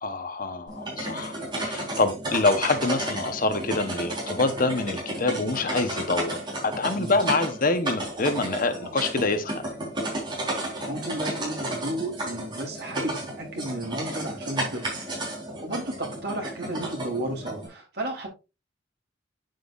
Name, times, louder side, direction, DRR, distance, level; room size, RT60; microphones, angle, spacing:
voice 1, 0.0-6.4 6.6-9.6, left 3 dB, 45° left, 1.1 m, -26 dB
sound 1, 0.7-17.7, right 1 dB, 25° right, 4.3 m, -33 dB
voice 2, 10.9-14.8 15.6-18.3, right 1 dB, 55° right, 3.3 m, -33 dB
9.0 x 7.7 x 2.6 m
head